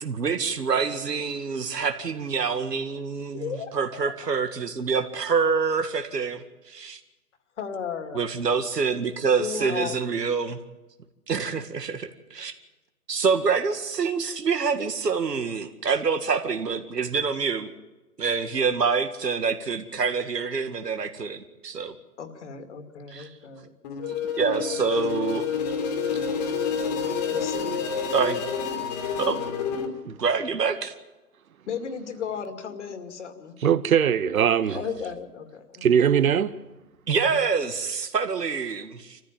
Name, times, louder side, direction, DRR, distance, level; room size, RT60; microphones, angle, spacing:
voice 1, 0.0-7.0 8.1-10.6 11.3-12.5 13.1-17.7 18.2-21.9 23.1-23.3 24.4-25.5 28.1-28.4 29.2-29.4 30.0-30.9 37.1-39.2, right 5 dB, 75° right, 2.2 m, -26 dB
voice 2, 3.3-4.1 7.6-8.2 9.4-10.0 22.2-23.7 27.3-27.7 31.7-33.6 34.7-35.9, left 7 dB, 45° left, 2.4 m, -34 dB
sound 1, 23.8-29.9, left 6 dB, 25° left, 2.3 m, -28 dB
voice 3, 33.6-34.8 35.8-36.6, right 8 dB, 60° right, 1.1 m, -21 dB
26.0 x 14.5 x 8.9 m
hypercardioid pair, 155°, 49 cm